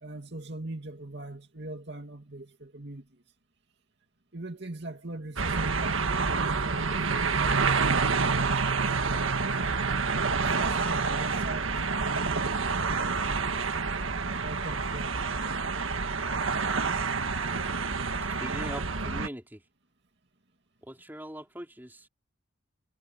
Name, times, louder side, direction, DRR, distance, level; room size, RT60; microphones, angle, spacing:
voice 1, 0.0-3.1 4.3-8.6 9.0-9.5 10.4-13.7 14.4-15.2, right 2 dB, 55° right, 2.5 m, -41 dB
sound 1, 5.4-19.3, right 4 dB, 80° right, 1.6 m, -28 dB
voice 2, 18.2-19.6 20.8-22.1, right 1 dB, 10° right, 3.6 m, -41 dB
head